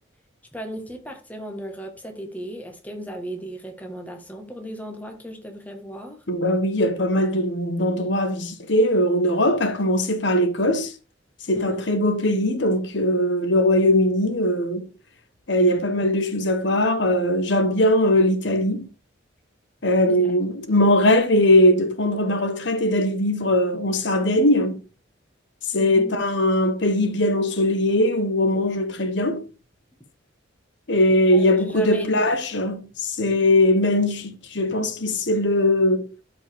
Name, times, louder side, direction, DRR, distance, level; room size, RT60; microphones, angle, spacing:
voice 1, 0.5-6.2 11.5-11.8 20.1-20.2 25.8-26.2 31.3-32.1, equal, 10° left, 1.6 m, -36 dB
voice 2, 6.3-10.9 11.5-14.9 15.5-18.9 19.8-24.8 25.6-29.4 30.9-36.1, left 1 dB, 65° left, 1.2 m, -20 dB
13.0 x 5.0 x 3.6 m
head